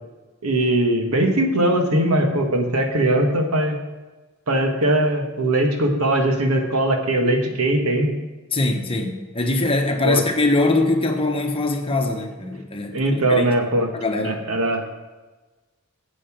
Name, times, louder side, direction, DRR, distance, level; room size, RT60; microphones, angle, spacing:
voice 1, 0.4-3.8 4.5-8.1 10.0-10.2 12.9-13.9 14.2-14.9, right 1 dB, 90° right, 3 dB, 1.5 m, -20 dB
voice 2, 8.5-13.0 13.3-13.5 13.9-14.4, left 2 dB, 25° left, 4 dB, 1.1 m, -22 dB
8.5 x 8.1 x 6.0 m, 1.2 s
head